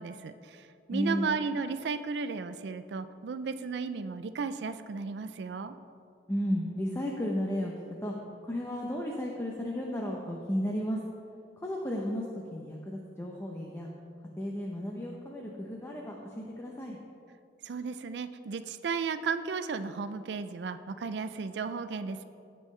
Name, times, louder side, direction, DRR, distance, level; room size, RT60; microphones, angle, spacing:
voice 1, 0.0-5.7 17.6-22.2, right 5 dB, 70° right, 11 dB, 0.4 m, -34 dB
voice 2, 0.9-1.6 6.3-7.7 8.0-8.1 8.4-11.0 11.6-12.2 12.5-13.9 14.4-17.0, equal, 15° left, -1 dB, 0.6 m, -33 dB
15.5 x 5.4 x 3.2 m, 2.5 s
head